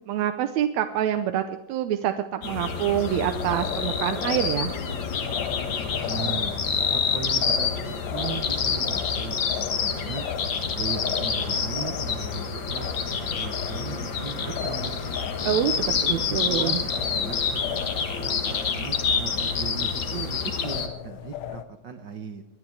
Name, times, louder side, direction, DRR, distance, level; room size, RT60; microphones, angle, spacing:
voice 1, 0.0-4.7 15.4-16.8, right 10 dB, 75° right, 7 dB, 2.0 m, -26 dB
sound 1, 2.4-20.9, left 6 dB, 50° left, 1.7 m, -28 dB
sound 2, 2.6-21.6, left 11 dB, 75° left, 1.9 m, -38 dB
voice 2, 6.0-10.2 10.7-14.9 15.7-22.4, right 6 dB, 60° right, 6 dB, 1.2 m, -38 dB
24.5 x 9.8 x 4.8 m, 0.79 s
omnidirectional pair, 3.4 m